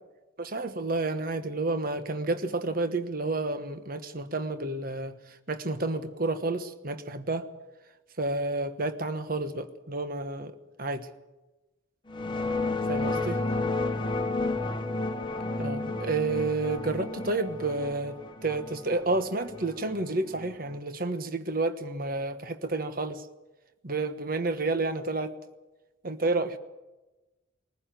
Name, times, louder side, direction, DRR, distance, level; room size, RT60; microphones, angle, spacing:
voice 1, 0.4-5.1 5.5-7.5 8.2-10.5 10.8-11.1 12.9-13.4 15.6-18.2 18.4-23.2 23.8-25.3 26.0-26.6, right 2 dB, 45° right, 9 dB, 1.2 m, -30 dB
sound 1, 12.1-20.8, left 2 dB, 25° left, 1.3 m, -32 dB
21.5 x 15.0 x 9.1 m, 1.1 s
head